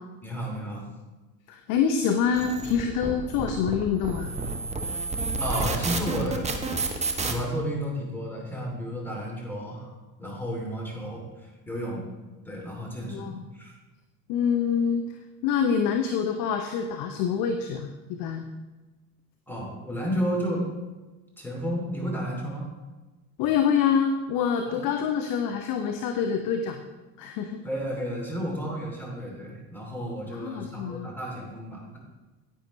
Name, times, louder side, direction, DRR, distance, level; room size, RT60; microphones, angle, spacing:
voice 1, 0.2-0.8 5.4-6.5 7.2-9.9 10.2-12.1 12.4-13.7 19.5-20.7 21.4-22.7 24.7-24.9 27.6-32.0, equal, 5° left, -3 dB, 2.8 m, -32 dB
voice 2, 1.5-4.3 13.1-13.4 14.3-15.1 15.4-18.5 23.4-26.8 27.2-27.6 30.3-31.1, left 7 dB, 40° left, 6 dB, 0.8 m, -26 dB
sound 1, 2.3-7.3, right 3 dB, 15° right, 0.9 m, -30 dB
10.0 x 8.9 x 3.2 m, 1.2 s
figure-of-eight pair, 70°, 49 cm